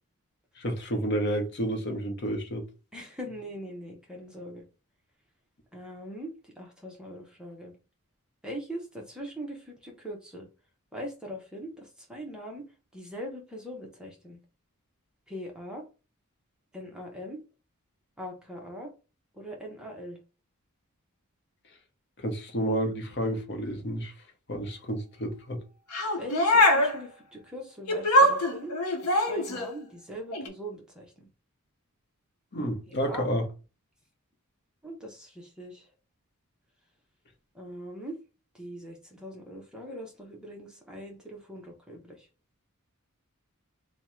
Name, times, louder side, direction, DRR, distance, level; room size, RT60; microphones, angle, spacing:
voice 1, 0.6-2.6 22.2-24.1 24.5-25.6 32.5-33.4, equal, 50° left, 0.8 m, -30 dB
voice 2, 2.9-4.6 5.7-7.7 8.4-10.5 10.9-12.6 12.9-14.4 15.3-15.8 16.7-17.4 18.2-18.9 19.4-20.2 26.2-28.7 29.3-31.3 33.0-33.3 34.8-35.8 37.6-38.2 38.6-42.2, equal, 5° right, 0.6 m, -41 dB
sound 1, 25.9-27.0 27.9-29.8 30.3-30.5, left 1 dB, 90° left, 0.7 m, -23 dB
3.5 x 2.1 x 4.2 m
head